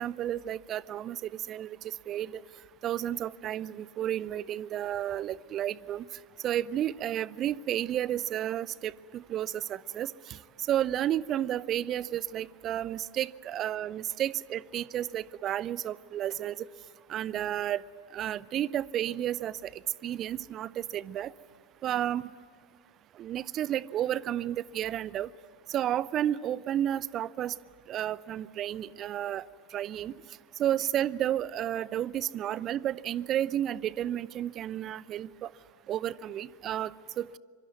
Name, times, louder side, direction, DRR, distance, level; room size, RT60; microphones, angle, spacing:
voice 1, 0.0-1.8 2.1-2.4 2.8-6.1 6.4-10.4 10.7-16.6 17.1-17.8 18.1-19.7 20.0-21.3 21.8-22.3 23.2-25.3 25.7-27.5 27.9-29.4 29.7-30.1 30.6-35.5 35.9-37.4, right 11 dB, 30° right, 22 dB, 0.6 m, -32 dB
25.5 x 23.5 x 9.5 m, 2.1 s
figure-of-eight pair, 90°, 0 cm